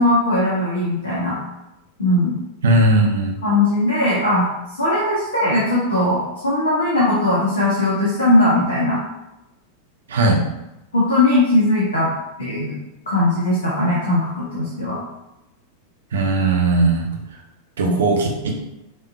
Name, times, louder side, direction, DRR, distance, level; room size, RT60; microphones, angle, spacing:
voice 1, 0.0-1.4 2.0-2.3 3.4-4.4 4.7-9.0 10.9-12.1 12.4-12.8 13.1-15.0 17.8-18.0, left 1 dB, 75° left, -7 dB, 1.3 m, -19 dB
voice 2, 2.6-3.3 10.1-10.4 16.1-17.1 17.8-18.5, right 2 dB, 65° right, 2 dB, 0.8 m, -18 dB
5.9 x 3.7 x 2.3 m, 0.92 s
figure-of-eight pair, 90°, 0 cm